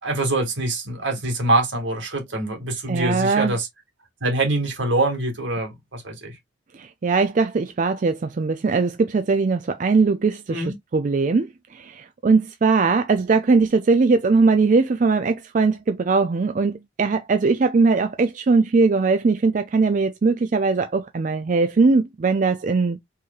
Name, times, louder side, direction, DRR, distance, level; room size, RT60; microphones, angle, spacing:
voice 1, 0.0-3.7 4.2-6.4 10.5-10.7, right 2 dB, 80° right, 2.0 m, -24 dB
voice 2, 2.9-3.5 6.7-10.6 10.9-23.0, right 4 dB, 40° right, 0.4 m, -20 dB
4.6 x 3.1 x 2.4 m
head